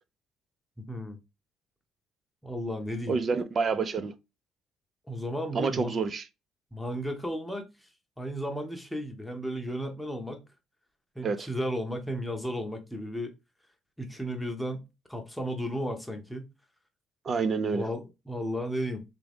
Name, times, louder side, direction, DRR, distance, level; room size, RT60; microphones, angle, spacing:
voice 1, 0.8-1.2 2.4-3.2 5.1-5.9 6.7-7.6 8.2-10.4 11.1-13.3 14.0-14.8 15.1-16.5 17.7-19.0, equal, ahead, 1.0 m, -34 dB
voice 2, 3.1-4.1 5.5-6.3 11.2-11.5 17.2-17.9, right 5 dB, 40° right, 0.5 m, -28 dB
3.7 x 3.5 x 3.5 m
cardioid pair, 120°, 0 cm